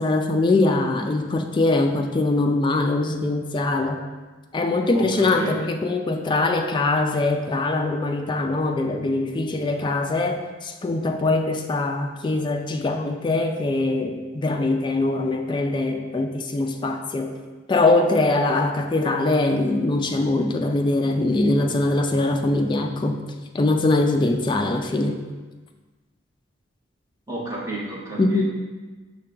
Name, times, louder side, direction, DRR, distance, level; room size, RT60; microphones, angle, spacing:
voice 1, 0.0-4.0 4.5-17.3 17.7-23.2 23.5-25.2 28.2-28.4, left 2 dB, 25° left, 4 dB, 0.3 m, -22 dB
voice 2, 27.3-28.4, right 1 dB, 15° right, -5 dB, 0.9 m, -31 dB
5.5 x 2.2 x 3.7 m, 1.3 s
head